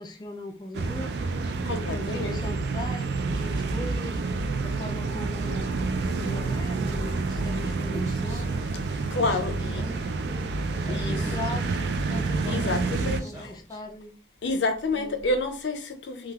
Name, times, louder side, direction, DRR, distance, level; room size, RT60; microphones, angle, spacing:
voice 1, 0.0-1.5 1.9-4.2 4.6-5.7 6.2-8.8 9.7-10.5 10.9-12.8 13.2-14.2 14.9-15.2, left 1 dB, 25° left, 0.3 m, -39 dB
sound 1, 0.7-13.2, right 3 dB, 65° right, 0.3 m, -28 dB
voice 2, 1.6-2.4 9.1-9.8 10.9-11.3 12.5-13.3 14.4-16.3, left 2 dB, 80° left, 0.5 m, -29 dB
Human voice, 7.8-13.8, equal, 20° right, 0.6 m, -42 dB
3.3 x 2.3 x 2.2 m
head